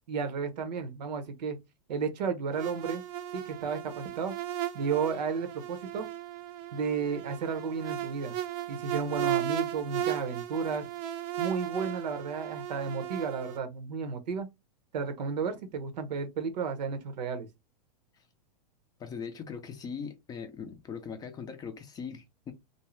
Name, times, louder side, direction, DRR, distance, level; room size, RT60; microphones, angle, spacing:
voice 1, 0.1-1.6 1.9-3.0 3.3-4.3 4.7-6.1 6.7-8.4 8.7-10.9 11.4-14.5 14.9-17.5, right 5 dB, 80° right, 0.9 m, -33 dB
sound 1, 2.5-13.6, right 12 dB, 45° right, 0.5 m, -36 dB
voice 2, 19.0-22.5, left 6 dB, 20° left, 0.4 m, -40 dB
2.6 x 2.0 x 3.1 m
supercardioid pair, 135°, 21 cm